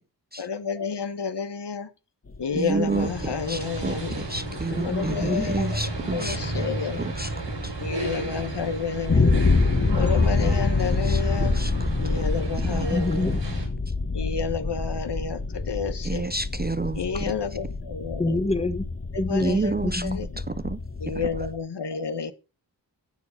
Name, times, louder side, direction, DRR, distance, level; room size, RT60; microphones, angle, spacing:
voice 1, 0.4-1.9 2.4-4.3 4.8-5.8 6.1-7.1 7.8-9.5 9.9-11.6 12.0-13.4 14.1-16.3 16.9-18.4 19.1-19.7 20.0-20.3 21.0-22.3, left 5 dB, 65° left, 1.3 m, -30 dB
sound 1, 2.3-21.6, left 3 dB, 35° left, 1.4 m, -27 dB
voice 2, 2.5-6.7 7.0-7.3 7.6-7.7 10.2-10.3 11.0-11.9 12.7-13.0 16.0-17.3 19.4-20.1 20.5-20.8, right 3 dB, 25° right, 0.5 m, -30 dB
sound 2, 2.9-13.7, right 1 dB, 70° right, 4.9 m, -33 dB
voice 3, 4.7-5.7 12.9-13.4 18.2-18.8 19.2-20.2, left 2 dB, 15° left, 1.3 m, -27 dB
11.5 x 7.1 x 5.7 m
wide cardioid pair, 60°, 43 cm